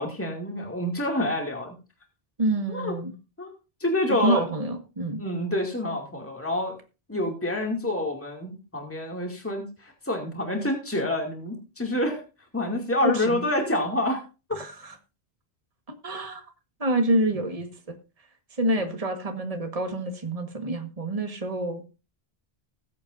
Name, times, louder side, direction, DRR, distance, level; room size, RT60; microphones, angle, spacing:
voice 1, 0.0-1.7 2.7-2.9 3.4-3.5 3.8-4.5 5.2-6.8 7.1-12.2 12.5-14.2 18.8-18.9, left 1 dB, 15° left, 1 dB, 2.5 m, -27 dB
voice 2, 2.4-3.1 4.1-5.2 13.0-13.4 14.5-14.9 15.9-16.4 16.8-17.7 18.6-21.8, right 1 dB, 35° right, 5 dB, 1.7 m, -27 dB
20.5 x 8.5 x 2.6 m, 0.31 s
omnidirectional pair, 1.0 m